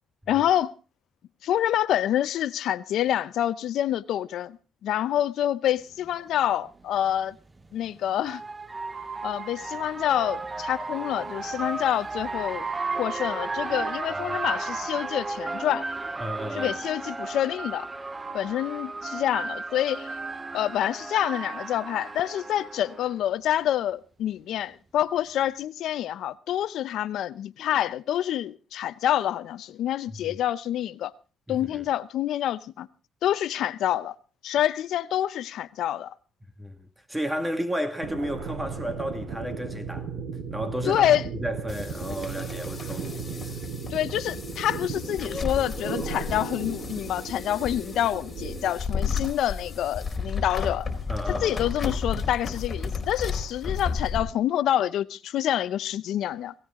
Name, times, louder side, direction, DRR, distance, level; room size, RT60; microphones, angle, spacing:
voice 1, 0.3-0.7 1.4-7.4 7.7-8.4 9.2-12.7 13.0-15.9 16.5-17.9 18.3-20.1 20.5-31.1 31.5-32.9 33.2-34.2 34.4-36.1 40.9-41.2 43.9-50.9 51.3-56.5, left 11 dB, 80° left, 0.7 m, -27 dB
sound 1, 6.0-6.1 7.6-23.2, right 3 dB, 25° right, 1.0 m, -34 dB
voice 2, 16.2-16.8 30.1-30.4 31.5-31.9 36.6-40.1 40.5-43.6 51.1-51.6, equal, 10° right, 2.1 m, -33 dB
sound 2, 38.0-48.7, right 5 dB, 80° right, 3.7 m, -36 dB
sound 3, 41.7-54.2, left 5 dB, 30° left, 4.4 m, -33 dB
17.5 x 16.5 x 3.7 m
cardioid pair, 90°, 0 cm